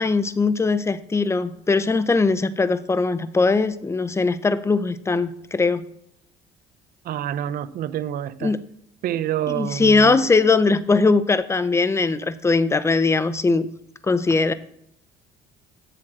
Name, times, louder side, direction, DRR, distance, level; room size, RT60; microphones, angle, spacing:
voice 1, 0.0-5.8 8.4-8.6 9.5-13.7 14.1-14.5, left 3 dB, 15° left, 0.7 m, -20 dB
voice 2, 7.0-8.5 9.0-10.2, right 11 dB, 60° right, 0.6 m, -27 dB
7.6 x 7.5 x 7.6 m
cardioid pair, 110°, 17 cm